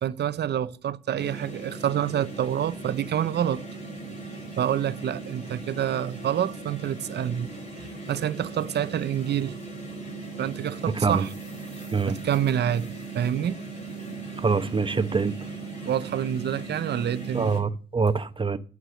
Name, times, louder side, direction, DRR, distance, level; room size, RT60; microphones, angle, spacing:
voice 1, 0.0-3.6 4.6-9.5 10.4-11.3 12.0-13.6 15.9-17.5, right 10 dB, 65° right, 0.7 m, -27 dB
sound 1, 1.2-17.6, right 3 dB, 40° left, 4.8 m, -38 dB
voice 2, 14.4-15.3 17.3-18.6, right 4 dB, 25° right, 0.9 m, -24 dB
9.1 x 4.8 x 7.4 m
cardioid pair, 90°, 19 cm